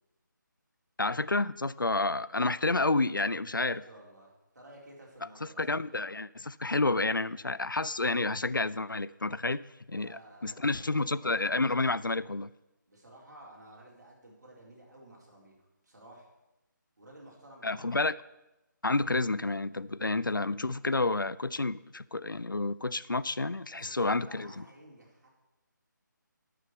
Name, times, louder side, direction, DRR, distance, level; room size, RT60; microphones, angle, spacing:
voice 1, 1.0-3.8 5.6-9.6 9.9-12.5 17.6-18.1 18.8-24.5, left 3 dB, 80° left, 18 dB, 0.5 m, -30 dB
voice 2, 3.6-5.9 9.9-11.2 12.9-15.5 15.8-16.3 17.0-17.9 23.7-25.3, right 1 dB, 55° right, -2 dB, 4.3 m, -53 dB
10.5 x 6.5 x 8.1 m, 0.98 s
figure-of-eight pair, 150°, 11 cm